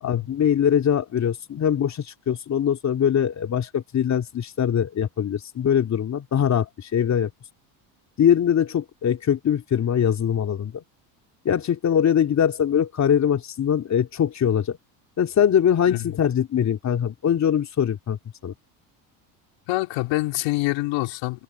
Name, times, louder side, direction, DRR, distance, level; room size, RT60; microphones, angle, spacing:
voice 1, 0.0-7.3 8.2-10.8 11.4-14.8 15.2-18.2 18.4-18.5, left 9 dB, 35° left, 3.1 m, -22 dB
voice 2, 19.7-21.4, left 20 dB, 65° left, 3.8 m, -26 dB
supercardioid pair, 120°, 48 cm